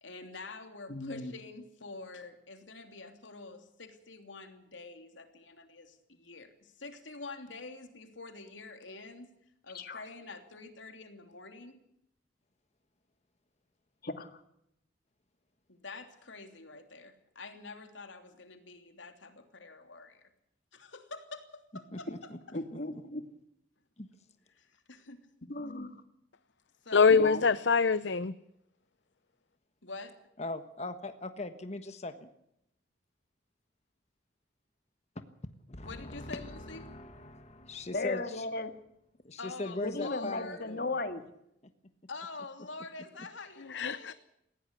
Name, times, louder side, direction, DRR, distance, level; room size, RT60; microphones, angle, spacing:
voice 1, 0.0-9.3 9.6-11.8 15.7-20.3 20.7-22.3 24.5-25.2 26.8-27.3 29.8-30.2 35.8-36.8 39.4-40.7 42.1-44.1, left 3 dB, 90° left, 7 dB, 3.1 m, -46 dB
voice 2, 0.9-1.3 9.7-10.0 14.0-14.4 22.5-23.2 25.5-26.0 27.1-27.4 37.9-38.7 39.8-41.2, left 2 dB, 55° left, 8 dB, 1.9 m, -36 dB
voice 3, 21.9-23.0 24.0-24.1 30.4-32.3 35.7-37.2 37.7-38.5 39.2-40.9, left 2 dB, 35° left, 9 dB, 1.4 m, -40 dB
voice 4, 26.9-28.3 43.7-44.1, left 5 dB, 70° left, 14 dB, 0.7 m, -24 dB
19.5 x 16.5 x 8.2 m, 0.78 s
head